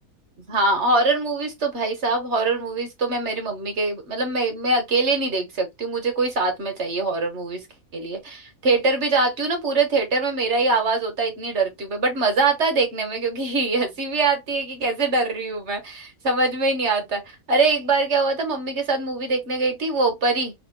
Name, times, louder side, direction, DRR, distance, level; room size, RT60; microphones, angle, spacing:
voice 1, 0.5-7.6 7.9-20.5, right 3 dB, 50° right, 1.3 m, -23 dB
3.6 x 3.0 x 3.1 m
omnidirectional pair, 1.7 m